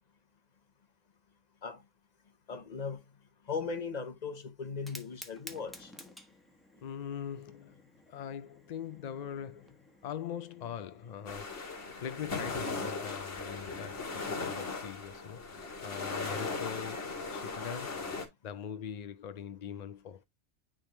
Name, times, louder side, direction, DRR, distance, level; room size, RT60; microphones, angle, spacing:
voice 1, 2.5-3.0 3.5-5.9, left 5 dB, 40° left, 0.9 m, -38 dB
Fire, 4.7-13.6, equal, ahead, 1.2 m, -55 dB
voice 2, 6.8-11.7 12.0-18.0 18.4-20.2, left 8 dB, 65° left, 0.4 m, -42 dB
sound 1, 11.3-18.3, left 3 dB, 80° left, 2.4 m, -38 dB
10.0 x 3.5 x 3.0 m
omnidirectional pair, 1.2 m